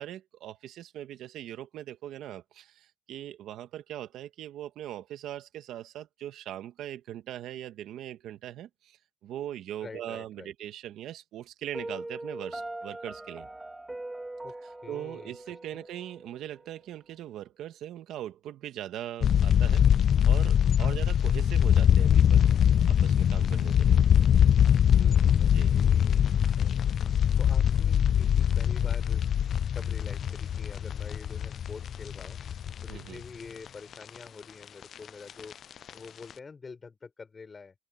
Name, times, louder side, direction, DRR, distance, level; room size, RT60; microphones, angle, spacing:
voice 1, 0.0-13.5 14.9-22.5 22.9-24.0 25.5-25.8 32.9-33.2, right 12 dB, 85° right, 1.7 m, -40 dB
voice 2, 9.8-10.5 14.4-14.5 14.8-15.8 20.8-21.0 24.9-26.7 27.0-32.4 32.8-35.6 35.9-37.7, left 4 dB, 35° left, 4.9 m, -47 dB
Piano, 11.7-16.7, right 2 dB, 15° right, 2.6 m, -41 dB
sound 1, 19.2-33.3 33.7-33.8 33.9-34.2 35.1-35.5 35.9-36.0 36.3-36.4, left 9 dB, 60° left, 0.3 m, -23 dB
open air
cardioid pair, 90°, 0 cm